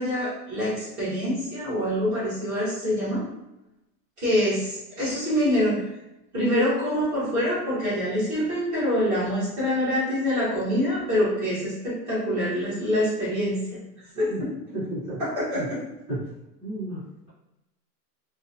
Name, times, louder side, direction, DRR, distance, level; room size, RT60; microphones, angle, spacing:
voice 1, 0.0-3.2 4.2-5.8 6.3-13.8 14.2-14.3 15.2-15.8, equal, 20° right, -11 dB, 1.1 m, -25 dB
voice 2, 14.7-15.2 15.5-15.7 16.1-16.2 16.6-17.3, right 1 dB, 10° left, -19 dB, 0.5 m, -33 dB
2.6 x 2.1 x 2.6 m, 0.91 s
supercardioid pair, 180°, 50 cm